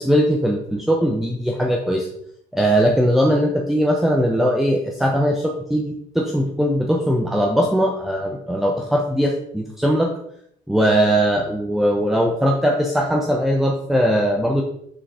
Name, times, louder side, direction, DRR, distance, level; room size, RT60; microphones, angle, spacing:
voice 1, 0.0-2.1 2.5-10.1 10.7-14.6, equal, ahead, 0 dB, 0.7 m, -20 dB
6.3 x 3.6 x 4.7 m, 0.72 s
cardioid pair, 110°, 17 cm